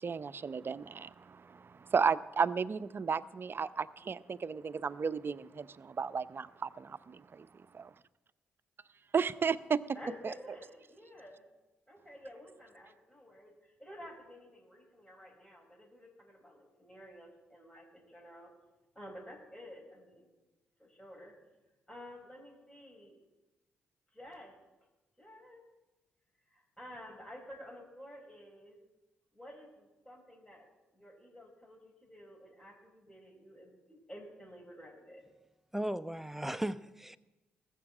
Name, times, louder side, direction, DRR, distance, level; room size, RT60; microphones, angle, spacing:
voice 1, 0.0-7.5 7.7-7.9 9.1-9.8 10.2-10.3, right 6 dB, 45° right, 15 dB, 0.7 m, -34 dB
voice 2, 9.9-11.5 11.9-18.5 18.9-20.3 20.8-21.3 21.9-23.2 24.1-24.5 25.2-25.6 26.4-28.8 29.3-35.2, equal, 15° left, -2 dB, 5.1 m, -51 dB
voice 3, 35.7-37.2, right 1 dB, 5° right, 11 dB, 0.8 m, -36 dB
19.0 x 7.4 x 7.3 m, 1.1 s
hypercardioid pair, 40°, 5 cm